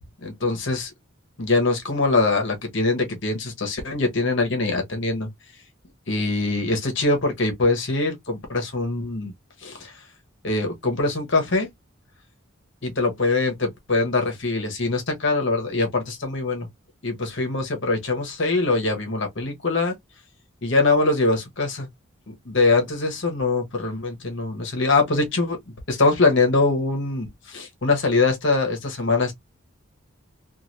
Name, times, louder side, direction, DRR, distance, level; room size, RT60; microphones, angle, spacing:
voice 1, 0.2-0.9 1.4-5.3 6.1-9.3 9.6-9.9 10.4-11.7 12.8-16.7 17.0-19.9 20.6-21.9 22.3-25.6 25.9-29.3, left 3 dB, 60° left, 1.0 m, -23 dB
3.1 x 2.5 x 2.6 m
head